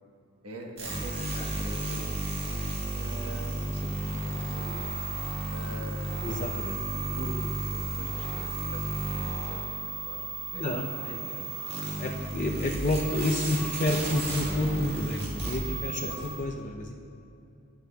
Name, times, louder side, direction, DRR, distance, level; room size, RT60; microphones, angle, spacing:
voice 1, 0.4-2.1 2.9-4.8 5.5-6.2 6.9-10.2 10.5-10.9 11.2-11.5 16.0-16.2, right 1 dB, 80° right, 1 dB, 1.2 m, -43 dB
sound 1, 0.8-16.4, right 2 dB, 50° right, 1.7 m, -33 dB
voice 2, 6.2-6.8 10.5-11.3 11.8-16.9, left 2 dB, 35° left, -1 dB, 0.5 m, -30 dB
16.0 x 9.1 x 2.3 m, 2.7 s
head